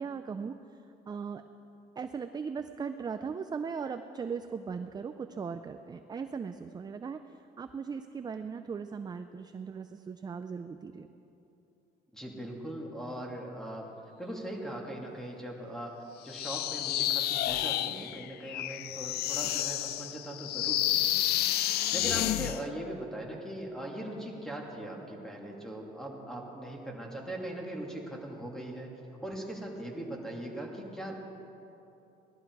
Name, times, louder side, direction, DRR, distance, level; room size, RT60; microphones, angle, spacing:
voice 1, 0.0-1.4 2.0-11.1, right 6 dB, 25° right, 8 dB, 0.5 m, -38 dB
voice 2, 12.1-13.9 14.2-21.5 21.9-28.9 29.2-31.1, right 1 dB, 5° left, -1 dB, 2.5 m, -40 dB
sound 1, 16.3-22.6, left 13 dB, 70° left, 0.5 m, -30 dB
19.0 x 12.0 x 4.7 m, 2.9 s
cardioid pair, 110°, 17 cm